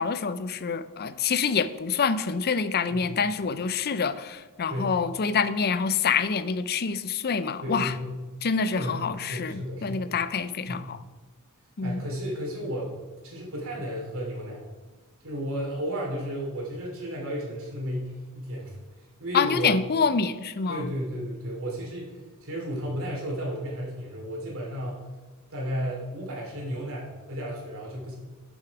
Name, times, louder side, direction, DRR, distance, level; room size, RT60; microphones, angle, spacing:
voice 1, 0.0-7.9 8.4-11.0 11.8-12.0 19.3-20.9, left 5 dB, 45° left, 13 dB, 0.5 m, -26 dB
voice 2, 7.6-8.1 8.7-9.0 9.3-10.1 10.7-10.8 11.8-13.0 13.2-14.6 15.2-18.8 19.2-19.7 20.7-25.0 25.5-28.1, equal, 65° right, -2 dB, 3.1 m, -33 dB
10.5 x 6.5 x 4.8 m, 1.2 s
head